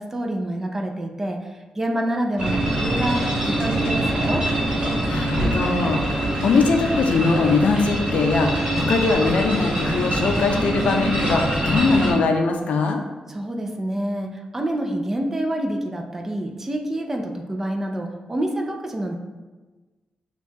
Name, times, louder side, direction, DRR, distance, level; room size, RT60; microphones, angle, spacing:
voice 1, 0.0-1.4 1.8-4.5 13.3-19.1, right 1 dB, 15° right, 3 dB, 0.4 m, -27 dB
sound 1, 2.4-12.1, right 1 dB, 35° right, 1.4 m, -24 dB
voice 2, 5.1-13.0, left 4 dB, 65° left, 3 dB, 0.5 m, -21 dB
6.3 x 2.3 x 2.7 m, 1.2 s
wide cardioid pair, 165°, 2 cm